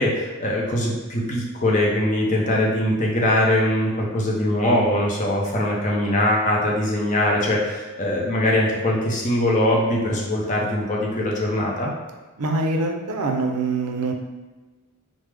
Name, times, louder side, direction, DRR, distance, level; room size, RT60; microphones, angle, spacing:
voice 1, 0.0-11.9, left 1 dB, 35° left, -2 dB, 0.5 m, -22 dB
voice 2, 12.4-14.1, right 3 dB, 75° right, 3 dB, 0.4 m, -24 dB
3.2 x 2.0 x 3.3 m, 1.3 s
head